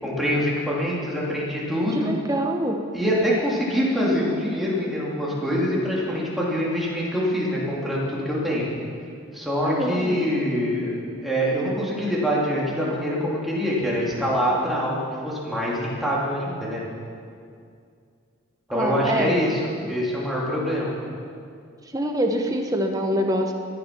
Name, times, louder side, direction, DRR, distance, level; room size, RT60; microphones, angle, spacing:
voice 1, 0.0-2.1 2.9-8.7 9.3-16.8 18.7-19.6 19.9-20.9, equal, ahead, -6 dB, 2.6 m, -25 dB
voice 2, 1.9-2.8 9.6-10.2 18.7-19.4 21.9-23.5, equal, 15° right, 3 dB, 1.0 m, -25 dB
14.5 x 11.0 x 6.0 m, 2.3 s
head